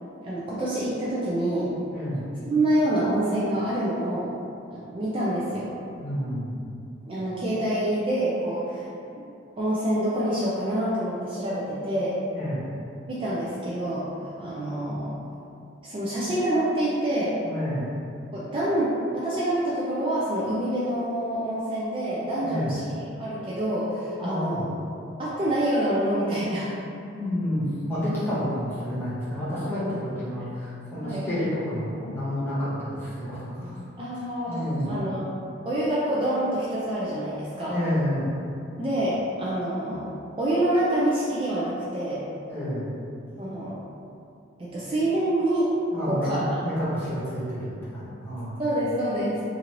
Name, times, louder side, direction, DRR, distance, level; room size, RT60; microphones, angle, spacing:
voice 1, 0.1-1.7 2.4-4.3 4.7-5.7 7.1-8.9 9.6-12.1 13.1-15.1 15.8-17.4 18.3-22.8 23.1-24.7 25.2-26.8 31.0-31.3 34.0-34.6 34.9-35.2 35.6-37.8 38.8-40.1 40.4-42.2 43.4-43.8 44.6-45.7 46.1-46.4 48.6-49.4, right 1 dB, 30° right, -8 dB, 0.4 m, -26 dB
voice 2, 1.9-2.3 5.9-6.6 12.3-12.6 17.4-17.9 22.4-22.7 24.2-24.7 27.1-33.8 34.5-34.9 37.7-38.3 42.5-42.9 45.9-48.6, equal, 10° left, -12 dB, 1.0 m, -29 dB
2.9 x 2.5 x 2.9 m, 2.6 s
head